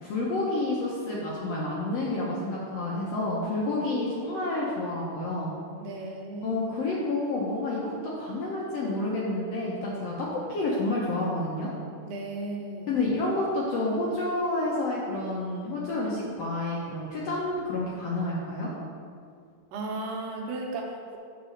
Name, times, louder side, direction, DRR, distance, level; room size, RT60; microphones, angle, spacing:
voice 1, 0.0-5.5 6.4-11.7 12.9-18.7, left 2 dB, 65° left, -5 dB, 1.7 m, -29 dB
voice 2, 5.8-6.6 12.0-13.0 19.7-21.2, right 2 dB, 75° right, 0 dB, 2.4 m, -35 dB
8.7 x 4.2 x 6.5 m, 2.1 s
omnidirectional pair, 3.9 m